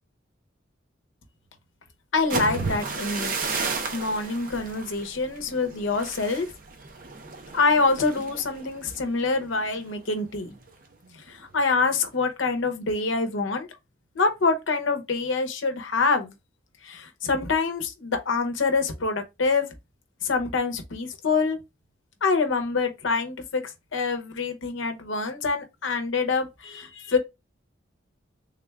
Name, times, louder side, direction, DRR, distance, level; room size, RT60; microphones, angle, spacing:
voice 1, 2.1-3.3 3.9-6.5 7.5-10.6 11.3-13.7 14.1-16.3 16.8-19.7 20.2-21.6 22.2-23.6 23.9-27.2, left 4 dB, 80° left, 0.7 m, -25 dB
sound 1, 2.1-10.0 10.4-10.7 11.0-11.5, right 4 dB, 45° right, 0.6 m, -34 dB
3.6 x 2.3 x 3.2 m
head